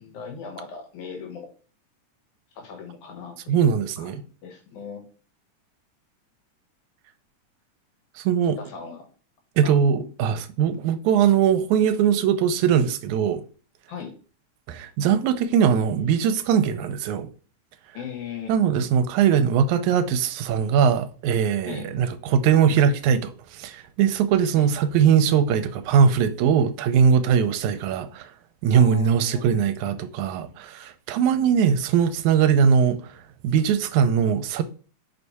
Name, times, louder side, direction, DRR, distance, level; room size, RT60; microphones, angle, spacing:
voice 1, 0.0-1.5 2.6-3.7 4.0-5.0 8.6-9.1 9.6-9.8 13.9-14.1 17.9-18.5 21.7-21.9 24.6-24.7 28.7-29.4 32.6-32.7, left 6 dB, 80° left, 2.7 m, -38 dB
voice 2, 3.5-4.2 8.2-8.6 9.6-13.4 14.7-17.3 18.5-28.3 28.6-33.0 33.4-34.6, right 7 dB, 85° right, 2.0 m, -21 dB
5.2 x 4.6 x 4.2 m
omnidirectional pair, 3.5 m